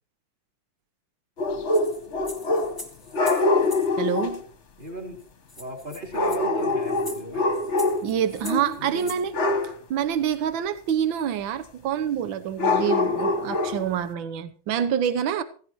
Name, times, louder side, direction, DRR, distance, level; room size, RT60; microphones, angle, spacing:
sound 1, 1.4-2.8 3.1-4.4 6.1-8.2 8.4-8.7 9.3-9.8 12.6-13.9, left 2 dB, 40° left, 1.4 m, -24 dB
sound 2, 1.7-3.9 4.9-5.0 5.2-5.3 5.5-9.2, left 1 dB, 10° left, 1.9 m, -42 dB
voice 1, 4.0-4.4 8.0-9.3 9.9-15.4, right 9 dB, 70° right, 1.6 m, -26 dB
voice 2, 4.8-5.2 5.6-7.5 8.8-9.3, right 1 dB, 25° right, 4.1 m, -36 dB
16.0 x 15.5 x 3.1 m
omnidirectional pair, 2.2 m